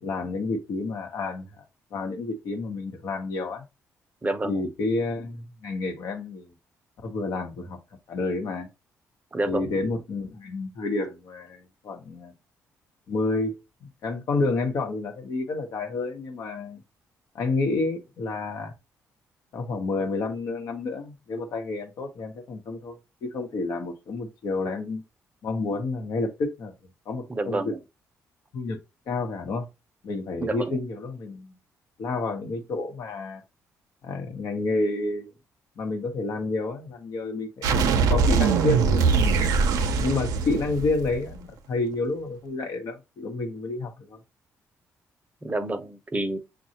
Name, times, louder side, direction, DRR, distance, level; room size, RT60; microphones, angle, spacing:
voice 1, 0.0-1.5 1.9-3.6 4.4-6.5 7.0-7.8 8.1-8.7 9.4-12.3 13.1-13.6 14.0-16.8 17.3-18.7 19.5-25.0 25.4-26.7 27.1-27.7 28.5-28.8 29.1-29.7 30.0-31.5 32.0-33.4 34.0-35.3 35.8-39.5 40.0-44.2, left 3 dB, 70° left, 1.0 m, -29 dB
voice 2, 4.2-4.6 9.3-9.6 27.3-27.8 30.4-30.8 45.4-46.4, right 2 dB, 25° right, 0.6 m, -28 dB
sound 1, 37.6-41.3, right 5 dB, 80° right, 0.5 m, -22 dB
6.4 x 2.3 x 2.8 m
supercardioid pair, 65°, 6 cm